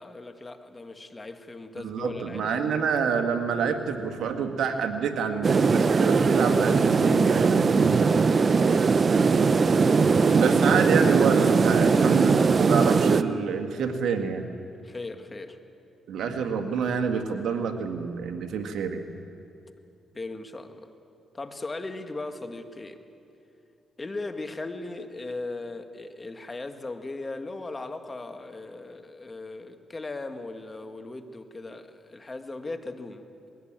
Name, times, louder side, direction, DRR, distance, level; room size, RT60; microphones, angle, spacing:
voice 1, 0.0-2.9 7.7-8.8 11.8-12.2 14.8-15.6 20.1-20.9 21.3-23.0 24.0-33.5, left 2 dB, 30° left, 7 dB, 1.8 m, -38 dB
voice 2, 1.8-7.6 10.3-12.3 12.6-14.4 16.1-19.0, right 6 dB, 75° right, 6 dB, 1.8 m, -27 dB
sound 1, 5.4-13.2, right 5 dB, 45° right, 0.7 m, -20 dB
21.5 x 17.0 x 8.9 m, 2.7 s
cardioid pair, 70°, 0 cm